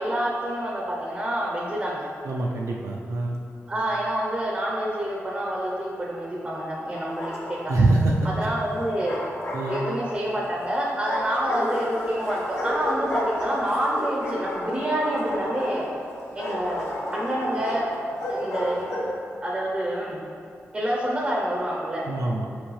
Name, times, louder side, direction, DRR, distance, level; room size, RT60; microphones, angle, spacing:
voice 1, 0.0-2.1 3.7-7.7 8.2-9.2 9.7-15.9 16.3-17.9 18.3-19.0 19.4-20.2 20.7-22.1, right 1 dB, 20° right, -3 dB, 0.6 m, -27 dB
voice 2, 2.2-3.4 7.7-8.1 8.4-8.5 9.5-9.8 22.0-22.4, right 2 dB, 75° right, -3 dB, 0.5 m, -24 dB
Bark, 6.9-7.8 8.7-10.3 11.1-19.2, left 1 dB, 55° left, 1.1 m, -32 dB
6.1 x 5.4 x 3.3 m, 2.6 s
wide cardioid pair, 170°, 5 cm